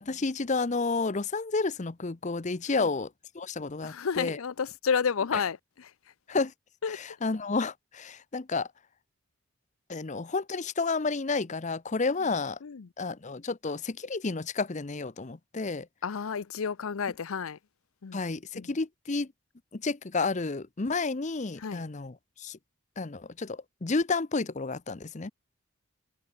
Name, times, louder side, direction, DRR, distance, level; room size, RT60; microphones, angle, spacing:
voice 1, 0.0-3.1 3.3-4.4 5.3-5.4 6.3-6.5 6.9-8.7 9.9-12.6 13.0-15.9 18.1-19.3 19.7-22.6 23.0-25.3, left 3 dB, 35° left, 0.7 m, -31 dB
voice 2, 3.8-5.9 6.8-7.0 12.6-12.9 16.0-17.6 18.0-18.2 18.5-18.7 21.6-21.8, left 6 dB, 75° left, 0.6 m, -31 dB
head